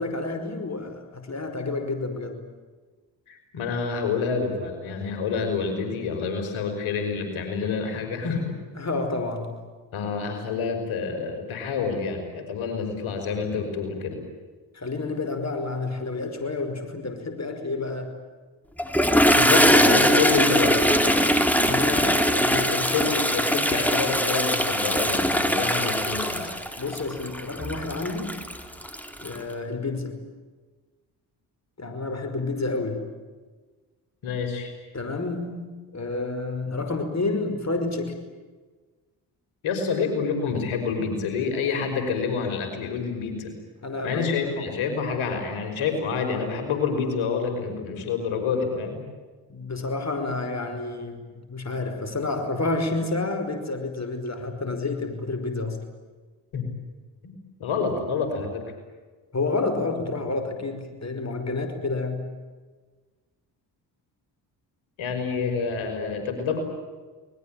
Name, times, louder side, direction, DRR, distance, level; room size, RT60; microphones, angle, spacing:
voice 1, 0.0-2.4 8.7-9.6 14.7-18.1 21.6-23.3 26.8-28.4 29.2-30.2 31.8-33.1 34.9-38.2 43.8-44.5 49.5-55.8 59.3-62.3, left 3 dB, 30° left, 7 dB, 5.5 m, -29 dB
voice 2, 3.3-8.6 9.9-14.3 19.3-21.4 21.9-22.2 22.7-26.5 34.2-34.7 39.6-43.6 44.0-49.0 56.5-56.7 57.2-57.3 57.6-58.6 65.0-66.6, left 5 dB, 70° left, 5 dB, 5.6 m, -28 dB
Toilet flush, 18.8-29.4, equal, 5° left, 4.1 m, -21 dB
28.0 x 21.0 x 9.1 m, 1.3 s
hypercardioid pair, 45°, 49 cm